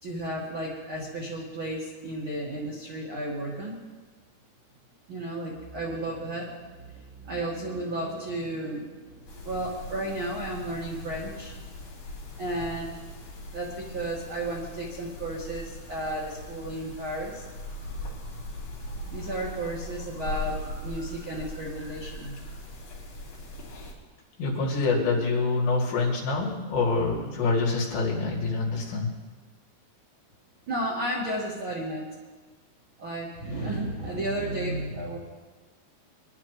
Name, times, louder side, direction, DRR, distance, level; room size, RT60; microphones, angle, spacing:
voice 1, 0.0-3.8 5.1-11.5 12.4-12.9 13.5-18.4 18.8-22.4 30.7-32.0 33.0-35.2, right 1 dB, 85° right, -4 dB, 1.1 m, -33 dB
sound 1, 9.3-23.9, left 2 dB, 50° left, 4.8 m, -40 dB
voice 2, 24.4-29.1, left 3 dB, 70° left, -3 dB, 4.6 m, -26 dB
23.0 x 11.5 x 3.1 m, 1.4 s
omnidirectional pair, 5.3 m